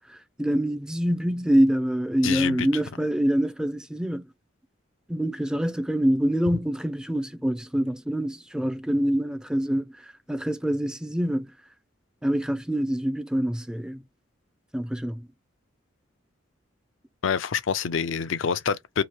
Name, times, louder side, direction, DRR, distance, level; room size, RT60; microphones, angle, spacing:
voice 1, 0.1-4.3 5.1-9.9 10.3-11.5 12.2-14.0 14.7-15.2, equal, 5° right, 0.4 m, -25 dB
voice 2, 2.2-2.7 17.2-19.0, left 6 dB, 80° left, 0.5 m, -26 dB
3.0 x 2.7 x 4.3 m
head